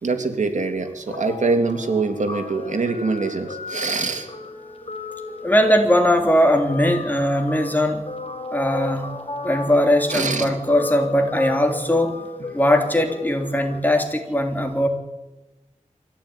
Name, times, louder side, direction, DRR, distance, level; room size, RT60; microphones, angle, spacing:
voice 1, 0.0-4.3 10.1-10.5 13.7-13.8, right 3 dB, 75° right, 6 dB, 2.9 m, -24 dB
Guitar, 1.1-13.8, left 3 dB, 50° left, 4.4 m, -35 dB
voice 2, 5.4-8.0 8.5-9.1 9.4-12.2 12.5-14.9, equal, 15° left, 4 dB, 3.6 m, -19 dB
23.5 x 16.0 x 9.9 m, 1.0 s
wide cardioid pair, 75°, 13 cm